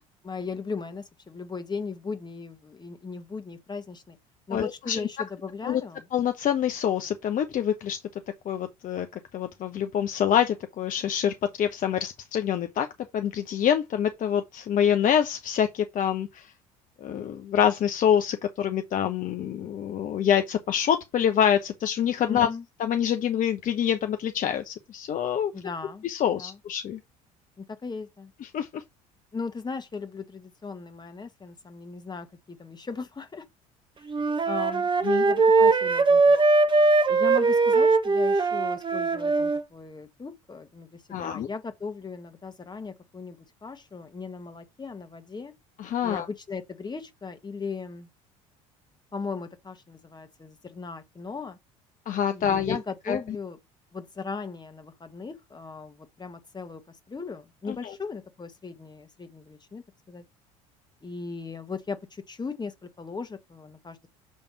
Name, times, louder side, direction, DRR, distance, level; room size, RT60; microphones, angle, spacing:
voice 1, 0.2-4.2 4.5-6.0 22.3-22.6 25.5-26.1 26.4-26.6 27.6-28.3 29.3-33.5 34.0-34.1 34.5-34.9 35.2-36.5 37.1-45.5 46.0-48.1 49.1-51.6 52.3-53.6 53.9-60.2 61.0-64.1, left 4 dB, 25° left, 1.6 m, -37 dB
voice 2, 4.5-5.0 5.6-5.8 6.1-8.0 8.4-12.9 13.1-16.5 17.0-22.5 22.8-25.5 26.0-27.0 28.4-28.8 35.0-35.2 41.1-41.5 45.8-46.3 52.1-52.8 53.1-53.2 57.7-57.9, left 9 dB, 45° left, 0.9 m, -26 dB
Wind instrument woodwind instrument, 34.1-39.6, right 3 dB, 25° right, 1.1 m, -21 dB
7.5 x 3.5 x 5.9 m
hypercardioid pair, 65°, 19 cm